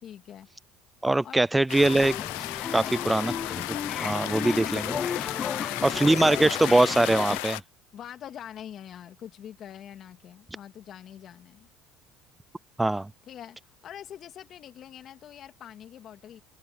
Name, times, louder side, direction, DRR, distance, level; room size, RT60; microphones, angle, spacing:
voice 1, 0.0-0.5 1.2-1.4 2.8-3.4 5.3-6.3 7.9-11.7 13.3-16.4, left 10 dB, 50° left, 2.9 m, -44 dB
voice 2, 1.0-2.2 2.7-3.3 4.0-5.0 5.8-7.6 12.8-13.1, right 2 dB, 10° right, 0.4 m, -22 dB
sound 1, 1.7-7.6, left 22 dB, 80° left, 1.0 m, -35 dB
sound 2, 1.8-7.4, left 6 dB, 35° left, 0.9 m, -33 dB
supercardioid pair, 80°, 0 cm